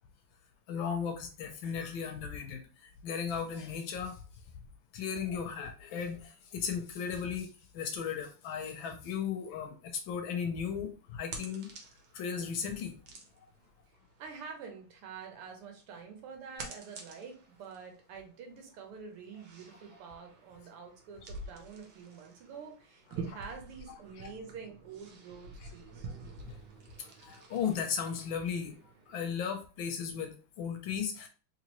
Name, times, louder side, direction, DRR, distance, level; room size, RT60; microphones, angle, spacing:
voice 1, 0.7-4.2 4.9-11.7 12.1-12.9 24.2-24.3 27.0-28.7 29.1-31.3, left 7 dB, 70° left, 5 dB, 1.3 m, -36 dB
sound 1, 10.3-29.2, right 4 dB, 65° right, 1.5 m, -49 dB
voice 2, 14.2-26.1, right 5 dB, 90° right, 3 dB, 1.8 m, -47 dB
3.8 x 3.1 x 3.0 m, 0.35 s
omnidirectional pair, 2.4 m